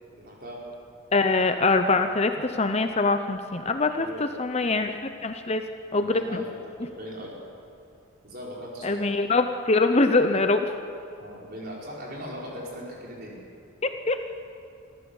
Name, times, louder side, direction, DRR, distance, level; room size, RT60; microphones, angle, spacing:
voice 1, 0.1-0.6 3.9-4.3 5.9-7.3 8.2-9.1 11.2-13.4, equal, 45° right, -4 dB, 5.0 m, -39 dB
voice 2, 1.1-5.0 5.2-5.7 5.9-6.4 6.8-6.9 8.8-10.7 13.8-14.2, left 3 dB, 30° left, 7 dB, 0.7 m, -23 dB
24.5 x 14.5 x 7.2 m, 2.5 s
head